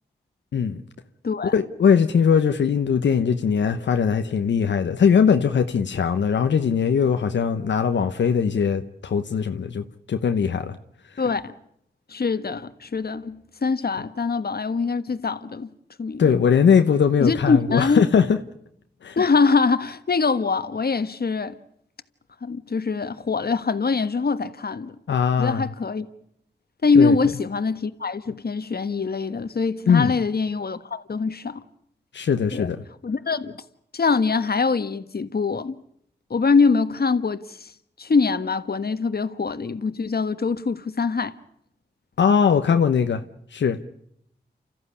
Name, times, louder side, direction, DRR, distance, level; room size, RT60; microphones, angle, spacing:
voice 1, 1.5-10.8 16.2-18.4 19.0-19.2 25.1-25.7 26.9-27.2 29.9-30.1 32.1-32.8 42.2-43.2 43.5-43.8, left 6 dB, 90° left, 1.0 m, -20 dB
voice 2, 11.2-11.5 12.1-15.7 16.0-16.4 17.2-18.0 19.2-21.6 22.4-24.9 25.4-26.1 26.8-31.6 32.5-32.7 33.0-33.5 33.9-35.7 36.3-37.7 38.0-41.3, left 4 dB, 60° left, 1.5 m, -23 dB
29.0 x 14.0 x 9.8 m
cardioid pair, 40°, 18 cm